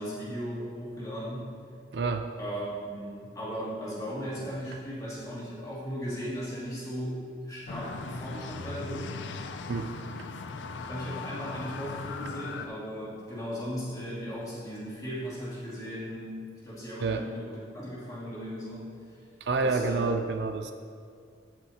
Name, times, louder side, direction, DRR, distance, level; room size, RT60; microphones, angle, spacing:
voice 1, 0.0-1.5 2.4-9.2 10.7-18.9 19.6-20.1, equal, 20° left, -8 dB, 2.4 m, -37 dB
voice 2, 1.9-2.3 9.7-9.9 17.0-17.2 19.4-20.7, right 4 dB, 65° right, 7 dB, 0.4 m, -28 dB
sound 1, 7.7-12.7, left 4 dB, 70° left, 0.4 m, -38 dB
15.5 x 5.5 x 2.9 m, 2.2 s
head